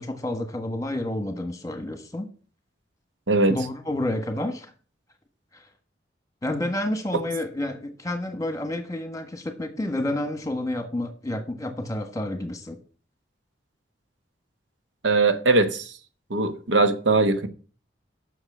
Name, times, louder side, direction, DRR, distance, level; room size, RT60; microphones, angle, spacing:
voice 1, 0.0-2.3 3.5-4.7 5.5-5.6 6.4-12.8, left 1 dB, 20° left, 1.4 m, -29 dB
voice 2, 15.0-15.9 16.3-17.5, right 3 dB, 90° right, 1.1 m, -20 dB
7.9 x 6.3 x 7.4 m
head